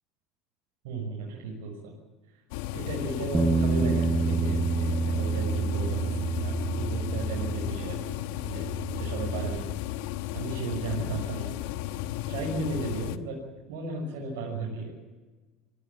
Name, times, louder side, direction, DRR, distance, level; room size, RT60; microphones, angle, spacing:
voice 1, 0.8-1.9 2.7-8.1 8.4-9.7 10.3-11.6 12.3-13.4 13.7-14.9, right 3 dB, 85° right, -2 dB, 6.7 m, -35 dB
sound 1, 2.5-13.2, left 13 dB, 80° left, 1.0 m, -34 dB
Bass guitar, 3.3-8.1 8.4-9.6, right 4 dB, 10° right, 0.6 m, -28 dB
24.5 x 16.5 x 9.0 m, 1.3 s
supercardioid pair, 125°, 0 cm